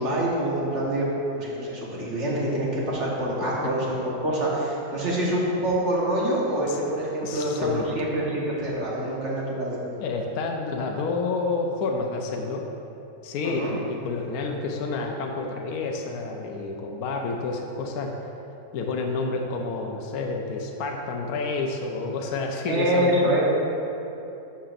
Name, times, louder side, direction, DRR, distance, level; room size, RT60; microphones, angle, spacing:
voice 1, 0.0-9.9 13.4-13.7 22.7-23.4, right 1 dB, 50° right, -5 dB, 1.5 m, -26 dB
voice 2, 7.2-7.9 9.0-9.2 10.0-12.7 13.2-18.2 18.7-23.4, left 3 dB, 75° left, 1 dB, 1.0 m, -29 dB
11.5 x 5.6 x 2.5 m, 2.9 s
omnidirectional pair, 1.6 m